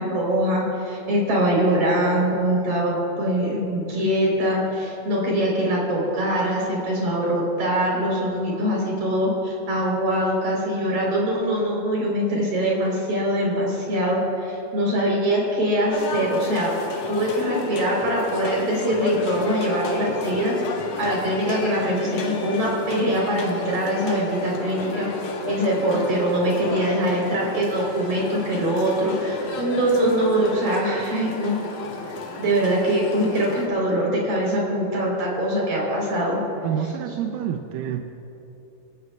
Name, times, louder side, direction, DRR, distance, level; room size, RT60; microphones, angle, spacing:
voice 1, 0.0-16.8 17.1-20.5 21.0-31.6 32.4-36.4, right 1 dB, 50° right, -3 dB, 5.3 m, -23 dB
sound 1, 15.9-33.7, left 3 dB, 60° left, 2.7 m, -32 dB
voice 2, 36.6-38.0, right 9 dB, 80° right, 5 dB, 2.1 m, -27 dB
29.0 x 15.0 x 2.4 m, 2.9 s
omnidirectional pair, 4.6 m